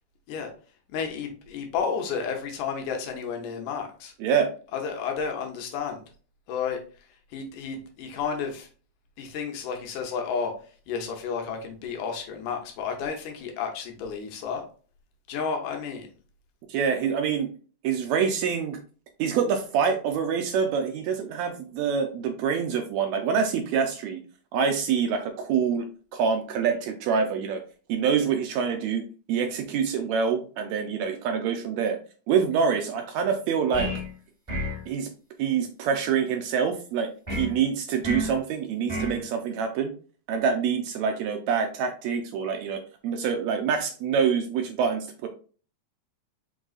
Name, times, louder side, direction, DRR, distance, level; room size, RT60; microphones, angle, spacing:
voice 1, 0.9-4.1 4.7-6.0 6.5-6.8 7.3-8.7 9.2-10.5 10.9-14.6 15.3-16.1, left 6 dB, 85° left, 3 dB, 2.4 m, -31 dB
voice 2, 4.2-4.5 16.7-17.5 17.8-18.8 19.2-24.2 24.5-25.9 26.1-27.6 27.9-32.0 32.3-33.9 34.9-35.1 35.4-39.9 40.3-45.3, right 6 dB, 80° right, 5 dB, 1.7 m, -26 dB
sound 1, 33.7-34.1 34.5-34.8 37.3-37.5 38.0-38.4 38.9-39.2, left 1 dB, 15° right, 1.1 m, -30 dB
5.3 x 3.8 x 2.4 m, 0.39 s
omnidirectional pair, 3.5 m